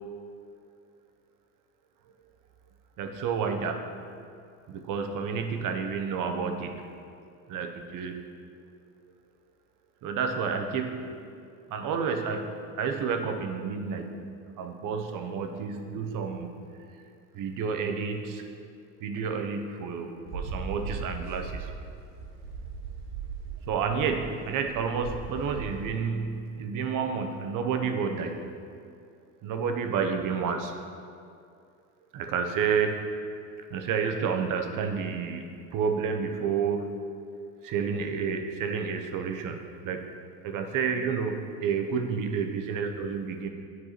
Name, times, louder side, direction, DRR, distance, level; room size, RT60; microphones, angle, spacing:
voice 1, 3.0-3.9 4.7-6.9 7.5-8.3 10.0-11.1 11.7-14.3 14.6-16.6 17.3-18.4 19.0-21.7 23.7-28.5 29.4-30.8 32.1-33.0 33.7-37.0 37.6-40.1 40.4-43.5, right 6 dB, 50° right, 5 dB, 0.8 m, -30 dB
sound 1, 20.3-25.9, right 4 dB, 80° right, 1.6 m, -38 dB
9.8 x 4.7 x 3.0 m, 2.4 s
hypercardioid pair, 80°, 42 cm